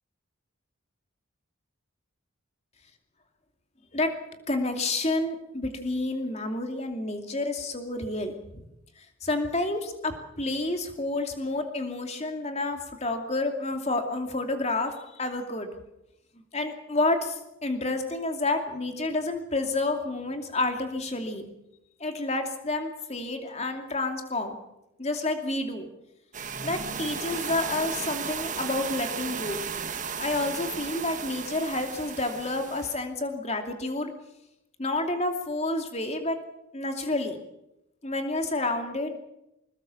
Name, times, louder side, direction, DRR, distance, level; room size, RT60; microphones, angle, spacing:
voice 1, 4.5-8.6 9.0-15.7 16.5-21.5 22.0-24.6 25.0-25.9 26.6-29.6 30.2-34.1 34.8-36.4 36.7-37.4 38.0-39.1, left 2 dB, 30° left, 5 dB, 2.6 m, -29 dB
sound 1, 26.3-33.0, right 6 dB, 35° right, 1.5 m, -35 dB
21.0 x 20.5 x 7.1 m, 0.87 s
head